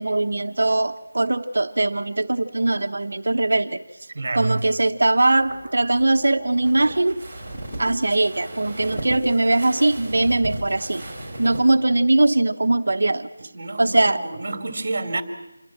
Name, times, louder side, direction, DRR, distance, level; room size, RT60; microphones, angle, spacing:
voice 1, 0.0-3.8 4.3-7.2 7.8-11.0 11.4-13.3 13.8-14.2, right 2 dB, 55° right, 7 dB, 1.1 m, -21 dB
voice 2, 4.1-4.6 11.4-11.6 13.4-15.2, right 2 dB, 30° right, 6 dB, 2.9 m, -29 dB
sound 1, 5.3-11.6, right 1 dB, ahead, 5.9 m, -35 dB
27.5 x 22.5 x 7.5 m, 0.94 s
figure-of-eight pair, 180°, 0 cm